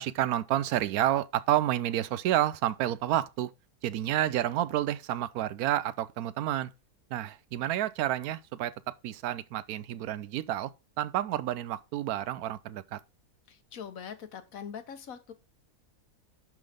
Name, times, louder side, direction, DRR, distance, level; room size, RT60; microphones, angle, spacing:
voice 1, 0.0-3.5 3.8-6.7 7.1-10.7 11.0-13.0, right 13 dB, 75° right, 1.0 m, -30 dB
voice 2, 13.5-15.3, left 7 dB, 65° left, 1.4 m, -42 dB
11.0 x 3.9 x 5.0 m
omnidirectional pair, 1.6 m